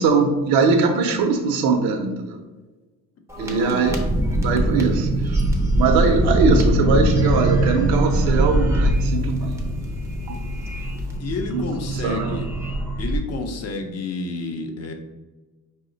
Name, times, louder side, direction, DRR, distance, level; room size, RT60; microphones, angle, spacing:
voice 1, 0.0-2.4 3.4-4.0 4.4-5.4 5.8-9.6 10.3-10.4 11.5-12.4, right 4 dB, 70° right, 2 dB, 0.6 m, -21 dB
sound 1, 3.3-13.2, right 1 dB, 10° right, 0.5 m, -22 dB
voice 2, 3.4-4.0 11.2-12.5 13.0-14.9, left 3 dB, 45° left, 4 dB, 0.6 m, -30 dB
4.8 x 2.1 x 3.8 m, 1.2 s
cardioid pair, 120°, 37 cm